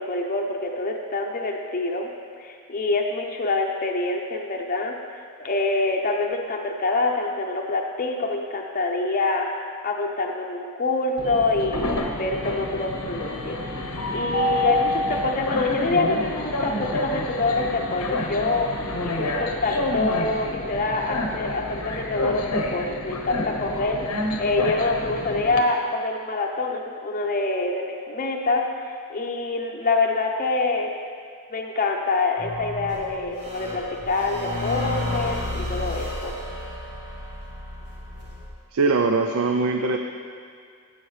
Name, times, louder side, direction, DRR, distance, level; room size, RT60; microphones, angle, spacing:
voice 1, 0.0-2.1 2.4-5.0 5.4-9.5 9.8-13.6 14.1-31.0 31.5-36.4, left 3 dB, 40° left, 0 dB, 0.6 m, -26 dB
Train, 11.2-25.6, left 1 dB, 90° left, 1.0 m, -28 dB
sound 1, 32.4-38.5, left 1 dB, 85° right, 2.2 m, -32 dB
voice 2, 38.7-40.0, right 3 dB, 65° right, 4 dB, 0.5 m, -21 dB
13.5 x 7.9 x 3.3 m, 2.1 s
head